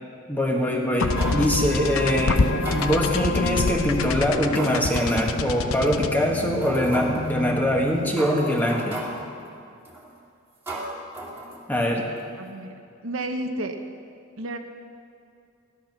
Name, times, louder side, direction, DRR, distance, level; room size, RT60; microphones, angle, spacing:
voice 1, 0.3-2.4 2.7-9.0 11.7-12.1, equal, 10° left, -1 dB, 1.7 m, -23 dB
sound 1, 1.0-8.3, left 3 dB, 80° left, 0.7 m, -27 dB
sound 2, 1.2-1.5 2.4-3.3 3.9-4.1 4.6-5.4 5.9-6.0 6.6-7.3 7.9-8.0 8.2-9.3 9.9-10.1 10.7-11.9 12.2-12.3, right 1 dB, 10° right, 2.2 m, -35 dB
voice 2, 12.4-12.7 13.0-13.8 14.4-14.6, right 1 dB, 70° right, 5 dB, 1.1 m, -31 dB
15.5 x 12.0 x 6.0 m, 2.5 s
head